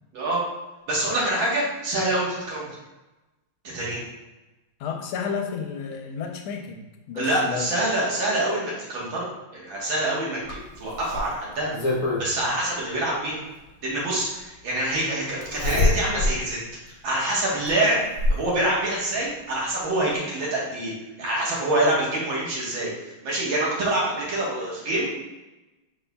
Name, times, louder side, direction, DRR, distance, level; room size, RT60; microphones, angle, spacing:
voice 1, 0.9-2.7 3.6-4.0 7.2-9.3 9.5-11.7 12.2-13.4 13.8-16.6 16.9-18.0 18.3-20.9 21.2-25.1, right 1 dB, 70° right, -5 dB, 2.0 m, -26 dB
voice 2, 4.8-7.7, left 6 dB, 90° left, 4 dB, 1.5 m, -32 dB
Zipper (clothing), 10.5-12.3 13.7-13.8 15.4-16.4 16.9-17.0 17.7-18.5 19.7-19.8 20.1-20.2, left 2 dB, 50° left, 1.2 m, -25 dB
5.2 x 4.0 x 2.2 m, 1.1 s
omnidirectional pair, 2.3 m